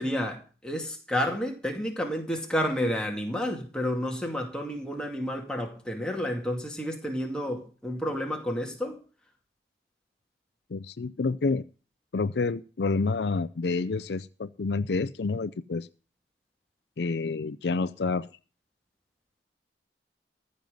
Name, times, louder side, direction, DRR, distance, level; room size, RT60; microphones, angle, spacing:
voice 1, 0.0-9.0, equal, 5° left, 2.4 m, -30 dB
voice 2, 10.7-11.7 12.1-15.9 17.0-18.3, left 3 dB, 70° left, 0.5 m, -28 dB
14.5 x 5.5 x 9.1 m
head